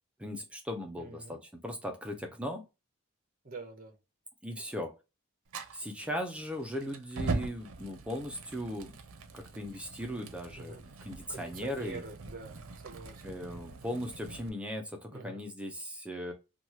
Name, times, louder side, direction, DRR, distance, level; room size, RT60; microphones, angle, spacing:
voice 1, 0.2-2.6 4.4-4.9 5.7-8.9 9.3-12.0 13.2-16.3, equal, 5° right, 0.4 m, -38 dB
voice 2, 1.0-1.4 3.4-4.0 10.5-10.8 11.3-13.2 15.1-15.4, right 3 dB, 40° right, 0.7 m, -45 dB
Fire, 5.5-14.5, right 3 dB, 80° right, 0.5 m, -42 dB
2.9 x 2.3 x 2.8 m
head